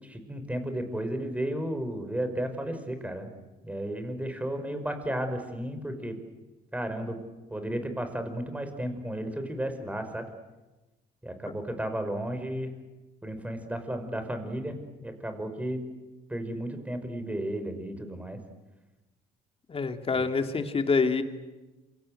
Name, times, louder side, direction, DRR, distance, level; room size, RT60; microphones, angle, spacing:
voice 1, 0.0-3.3 3.6-6.2 6.7-7.2 7.5-10.3 11.2-12.7 13.2-15.8 16.3-18.4 20.1-20.2, right 1 dB, 10° right, 7 dB, 5.7 m, -33 dB
voice 2, 19.7-21.2, left 4 dB, 35° left, 6 dB, 2.8 m, -26 dB
27.0 x 24.5 x 8.1 m, 1.1 s
supercardioid pair, 75°, 18 cm